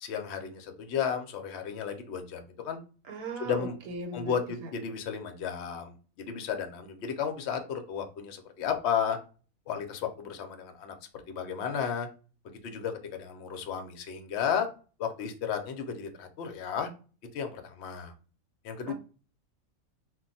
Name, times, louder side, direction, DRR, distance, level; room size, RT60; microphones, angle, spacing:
voice 1, 0.0-2.8 3.4-3.8 4.1-9.2 9.7-12.1 12.4-14.7 15.0-16.9 17.3-18.1 18.6-18.9, left 7 dB, 60° left, 5 dB, 0.7 m, -33 dB
voice 2, 3.1-4.3 4.6-4.7 18.9-19.0, right 3 dB, 80° right, 4 dB, 1.1 m, -38 dB
2.3 x 2.2 x 3.9 m, 0.36 s
omnidirectional pair, 1.5 m